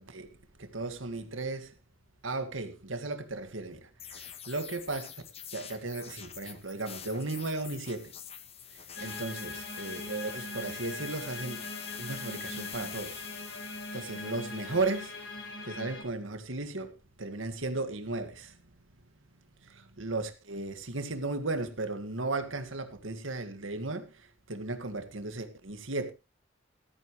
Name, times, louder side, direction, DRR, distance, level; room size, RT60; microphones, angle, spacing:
voice 1, 0.0-1.7 2.2-5.1 5.5-8.1 8.7-11.7 12.0-13.3 13.5-15.2 15.6-18.7 19.6-26.1, right 3 dB, 85° right, 1.9 m, -36 dB
sound 1, 4.0-15.4, left 8 dB, 30° left, 1.1 m, -46 dB
sound 2, 8.9-16.0, left 2 dB, 60° left, 6.7 m, -41 dB
14.0 x 13.5 x 3.2 m
head